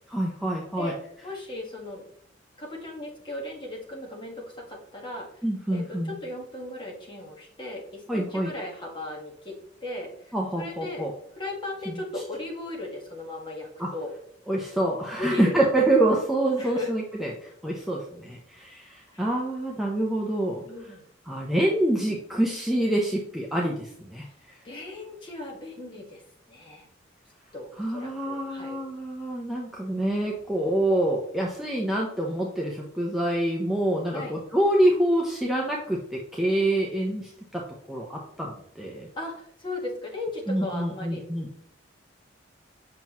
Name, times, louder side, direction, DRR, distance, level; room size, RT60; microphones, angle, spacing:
voice 1, 0.1-0.9 5.4-6.1 8.1-8.5 10.3-11.1 11.9-12.0 13.8-13.9 14.5-20.6 21.2-24.6 27.8-37.6 37.9-39.1 40.5-41.5, right 1 dB, ahead, -3 dB, 0.7 m, -26 dB
voice 2, 1.2-2.0 2.6-5.3 5.7-9.5 9.8-11.1 11.4-14.1 15.2-15.6 16.6-16.9 19.1-19.3 20.6-21.1 24.6-26.2 26.5-26.9 27.5-28.8 34.1-34.3 39.2-41.2, left 2 dB, 25° left, -1 dB, 1.5 m, -37 dB
7.5 x 5.8 x 3.0 m, 0.69 s
head